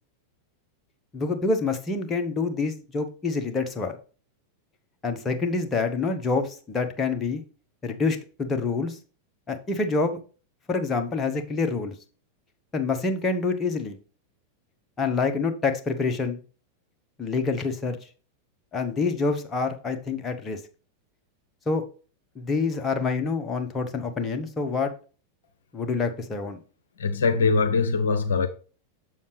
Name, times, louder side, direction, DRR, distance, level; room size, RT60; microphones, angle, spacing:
voice 1, 1.1-4.0 5.0-7.4 7.8-9.0 9.5-10.2 10.7-11.9 12.7-14.0 15.0-16.4 17.2-18.0 18.7-20.6 21.7-21.8 22.3-24.9 25.7-26.6, left 4 dB, 20° left, 1.2 m, -27 dB
voice 2, 27.0-28.5, left 4 dB, 65° left, 0.8 m, -22 dB
7.1 x 6.9 x 3.2 m
figure-of-eight pair, 90°, 0 cm